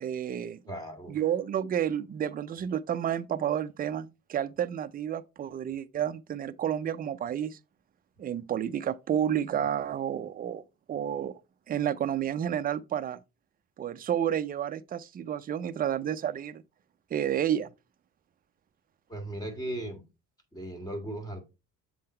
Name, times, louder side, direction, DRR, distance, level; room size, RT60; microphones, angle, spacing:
voice 1, 0.0-0.6 1.1-7.6 8.2-11.4 11.7-13.2 13.8-16.6 17.1-17.7, right 9 dB, 30° right, 0.4 m, -30 dB
voice 2, 0.7-1.2 19.1-20.0 20.5-21.4, right 1 dB, 10° left, 1.8 m, -37 dB
7.6 x 3.8 x 4.3 m
cardioid pair, 135°, 33 cm